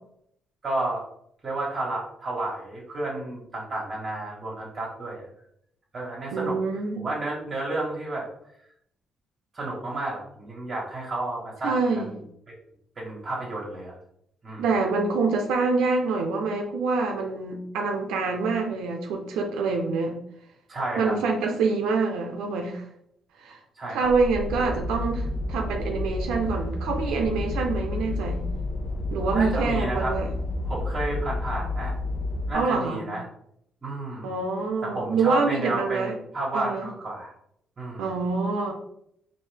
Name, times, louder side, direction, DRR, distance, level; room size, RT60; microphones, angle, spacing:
voice 1, 0.6-1.0 1.4-5.3 5.9-6.6 7.0-8.2 9.5-12.2 13.0-13.9 14.4-14.6 20.7-21.2 23.8-24.1 29.3-30.1 30.6-31.9 32.5-33.2 33.8-34.4 34.8-37.3 37.8-38.2, right 2 dB, 40° right, -5 dB, 1.4 m, -31 dB
voice 2, 6.3-7.1 11.6-12.1 14.6-20.2 21.0-22.8 23.4-23.6 23.9-28.5 29.1-30.3 32.5-33.1 34.2-36.2 36.5-36.9 38.0-38.7, right 4 dB, 90° right, 2 dB, 0.6 m, -26 dB
sound 1, 24.0-32.5, left 2 dB, 90° left, 0.8 m, -30 dB
4.5 x 2.7 x 3.3 m, 0.73 s
cardioid pair, 90°, 0 cm